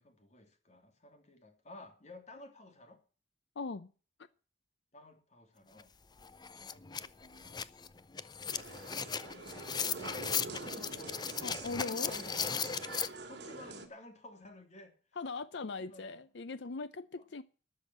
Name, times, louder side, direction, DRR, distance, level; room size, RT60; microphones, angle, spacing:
voice 1, 0.0-3.0 4.9-5.9 6.6-7.7 8.4-8.7 9.2-12.7 13.0-14.9 15.8-16.2 17.2-17.3, left 2 dB, 40° left, 3.1 m, -54 dB
voice 2, 3.6-3.9 11.4-12.2 15.2-17.4, left 3 dB, 70° left, 0.6 m, -40 dB
sound 1, 5.8-5.9 6.2-13.1, left 6 dB, 25° left, 0.5 m, -37 dB
sound 2, 8.5-13.9, right 3 dB, 65° right, 2.6 m, -46 dB
13.0 x 6.5 x 9.9 m
head